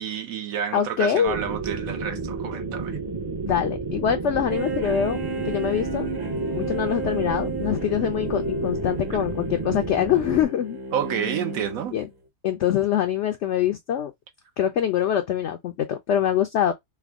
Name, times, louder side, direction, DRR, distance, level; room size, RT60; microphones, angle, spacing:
voice 1, 0.0-3.0 10.9-12.0, right 8 dB, 75° right, 1.1 m, -29 dB
voice 2, 0.7-1.4 3.5-5.2 5.4-6.1 6.6-10.8 11.9-12.1 12.4-14.1 14.6-16.7, left 9 dB, 65° left, 0.7 m, -24 dB
sound 1, 1.3-10.4, right 4 dB, 25° right, 0.5 m, -31 dB
sound 2, 4.5-12.1, right 1 dB, 50° right, 1.3 m, -33 dB
3.4 x 2.2 x 3.4 m
omnidirectional pair, 1.5 m